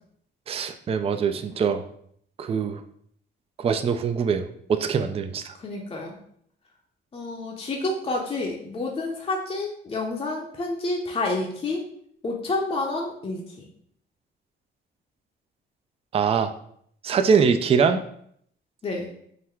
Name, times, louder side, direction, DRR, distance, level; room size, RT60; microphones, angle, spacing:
voice 1, 0.5-1.8 2.4-2.8 3.6-4.4 4.7-5.4 16.1-16.5 17.0-18.0, right 6 dB, 30° right, 9 dB, 0.3 m, -23 dB
voice 2, 5.6-6.2 7.1-11.8 12.2-13.7 18.8-19.1, left 2 dB, 30° left, -1 dB, 0.6 m, -29 dB
3.8 x 2.1 x 4.4 m, 0.67 s
cardioid pair, 90°, 20 cm